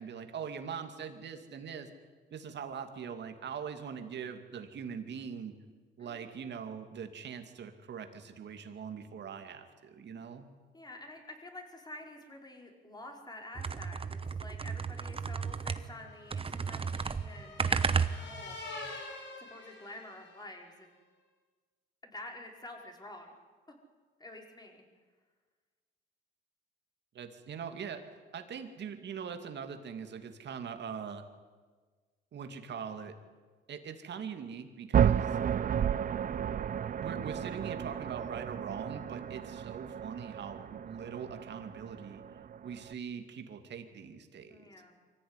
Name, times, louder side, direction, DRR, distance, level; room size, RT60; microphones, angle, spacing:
voice 1, 0.0-1.9 2.3-5.5 6.0-10.5 27.1-28.0 28.3-31.3 32.3-33.2 33.7-35.4 37.0-42.2 42.6-44.6, right 7 dB, 60° right, 6 dB, 2.5 m, -42 dB
voice 2, 10.7-18.6 19.4-20.9 22.0-23.3 23.7-23.8 24.2-24.8 44.5-44.9, left 1 dB, 20° left, 2 dB, 4.9 m, -49 dB
sound 1, 13.5-16.0 16.3-18.5, right 5 dB, 30° right, 1.1 m, -33 dB
sound 2, 15.2-20.6, left 3 dB, 65° left, 5.1 m, -47 dB
sound 3, 34.9-42.9, right 9 dB, 45° right, 0.6 m, -32 dB
24.0 x 15.0 x 9.8 m, 1.5 s
cardioid pair, 90°, 20 cm